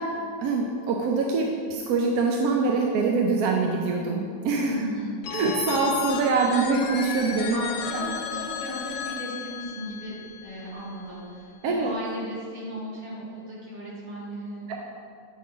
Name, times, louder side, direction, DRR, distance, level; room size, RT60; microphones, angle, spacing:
voice 1, 0.4-4.8 5.3-7.6 7.9-8.2 11.6-11.9 14.7-14.8, right 4 dB, 70° right, 0 dB, 0.9 m, -24 dB
voice 2, 4.6-5.2 7.5-14.8, right 1 dB, 55° right, -6 dB, 2.1 m, -36 dB
Telephone, 5.2-11.0, left 7 dB, 80° left, 1.2 m, -34 dB
8.4 x 4.7 x 3.7 m, 2.3 s
omnidirectional pair, 1.8 m